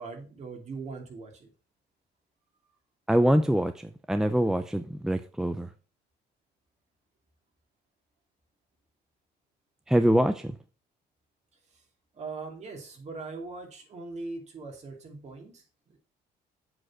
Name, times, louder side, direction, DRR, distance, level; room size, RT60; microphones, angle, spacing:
voice 1, 0.0-1.5 12.1-16.0, right 3 dB, 40° right, 2.7 m, -40 dB
voice 2, 3.1-5.7 9.9-10.5, right 1 dB, 5° right, 0.5 m, -24 dB
7.7 x 4.1 x 6.1 m
cardioid pair, 110°, 17 cm